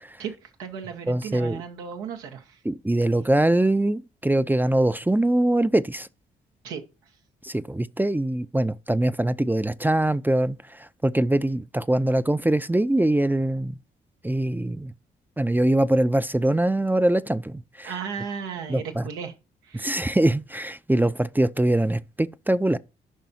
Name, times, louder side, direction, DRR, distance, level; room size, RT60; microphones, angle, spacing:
voice 1, 0.2-2.6 6.6-6.8 17.8-19.3 19.6-20.0, right 7 dB, 90° right, 1.2 m, -35 dB
voice 2, 1.1-1.6 2.6-6.1 7.4-10.6 11.0-13.7 14.2-14.9 15.4-17.9 18.7-19.0 19.7-22.8, right 1 dB, 10° right, 0.5 m, -23 dB
14.5 x 5.5 x 2.8 m
supercardioid pair, 50°, 21 cm